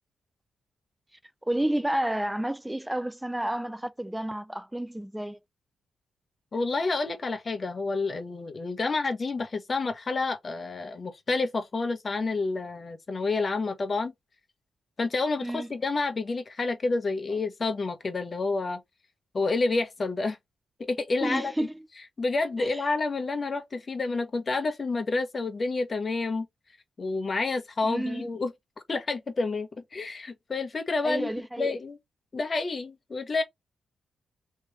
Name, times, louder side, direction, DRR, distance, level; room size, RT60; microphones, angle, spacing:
voice 1, 1.4-5.4 15.4-15.7 17.3-17.4 21.2-21.7 22.6-22.8 27.8-28.3 31.0-31.8, right 1 dB, 10° right, 0.5 m, -30 dB
voice 2, 6.5-14.1 15.0-18.8 19.3-20.4 20.8-21.5 22.2-26.5 27.0-28.5 28.9-31.3 31.6-32.0 32.3-33.4, left 3 dB, 40° left, 1.2 m, -29 dB
3.4 x 3.1 x 3.2 m
cardioid pair, 60°, 0 cm